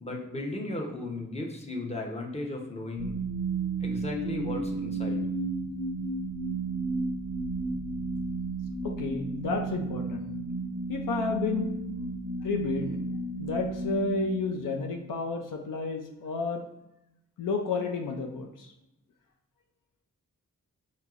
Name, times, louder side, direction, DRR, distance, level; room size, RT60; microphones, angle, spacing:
voice 1, 0.0-3.2 3.8-5.2, left 1 dB, 20° left, 1 dB, 0.8 m, -35 dB
sound 1, 3.0-15.1, right 3 dB, 50° left, 1.5 m, -33 dB
voice 2, 8.8-10.3 10.9-11.7 12.4-13.0 13.4-16.6 17.4-18.7, left 4 dB, 75° left, 3 dB, 0.5 m, -31 dB
4.4 x 2.9 x 2.5 m, 0.87 s
cardioid pair, 55°, 32 cm